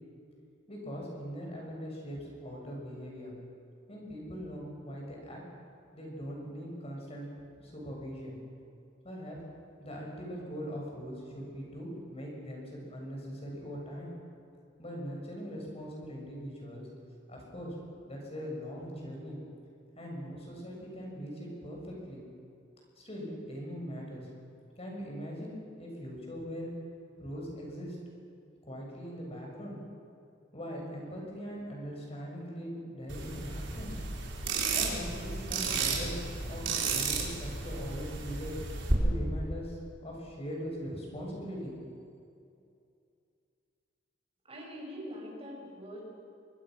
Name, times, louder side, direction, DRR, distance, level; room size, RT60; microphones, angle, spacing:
voice 1, 0.7-3.3 3.9-5.4 5.9-7.3 7.6-8.4 9.0-9.4 9.8-14.1 14.8-16.9 17.3-17.8 18.1-19.4 20.0-22.2 23.0-24.3 24.8-26.7 27.2-28.0 28.7-29.8 30.5-34.0 34.7-38.5 39.0-41.7, equal, 35° left, -1 dB, 7.0 m, -41 dB
sound 1, 33.1-38.9, right 4 dB, 80° right, 4.5 m, -33 dB
voice 2, 44.5-46.0, equal, 30° right, -2 dB, 6.7 m, -43 dB
24.5 x 23.5 x 6.5 m, 2.5 s
head